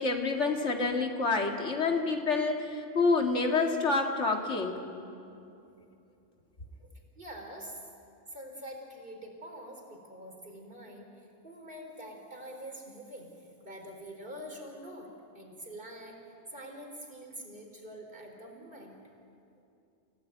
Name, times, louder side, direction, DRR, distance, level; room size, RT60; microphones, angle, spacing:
voice 1, 0.0-4.8, left 3 dB, 85° left, 3 dB, 2.4 m, -28 dB
voice 2, 7.2-7.8 8.3-16.2 16.5-19.0, equal, 50° right, 1 dB, 4.1 m, -45 dB
28.5 x 16.5 x 9.0 m, 2.7 s
omnidirectional pair, 1.2 m